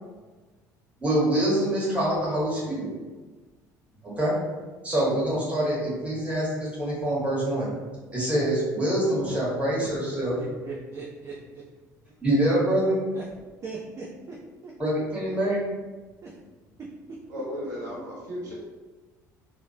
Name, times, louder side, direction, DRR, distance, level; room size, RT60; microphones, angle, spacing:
voice 1, 1.0-2.9 4.0-4.4 4.8-7.7 8.1-10.4 12.2-13.0 14.8-15.6, right 1 dB, 15° right, -6 dB, 1.3 m, -25 dB
voice 2, 9.1-9.4 9.7-10.0 17.3-18.5, equal, 70° right, -6 dB, 0.8 m, -36 dB
voice 3, 10.3-11.6 13.1-13.2 13.6-14.4 14.6-14.7 16.2-16.3, right 4 dB, 30° right, -4 dB, 0.4 m, -39 dB
2.9 x 2.1 x 2.6 m, 1.3 s
figure-of-eight pair, 60°, 10 cm